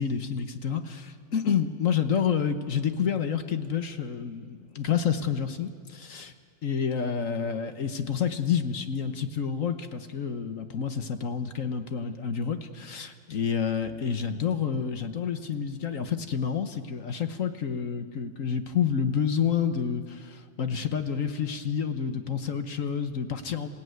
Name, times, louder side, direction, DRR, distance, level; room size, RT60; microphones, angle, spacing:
voice 1, 0.0-6.3 6.6-23.7, left 7 dB, 50° left, 9 dB, 1.2 m, -29 dB
27.0 x 16.5 x 9.3 m, 2.1 s
omnidirectional pair, 2.0 m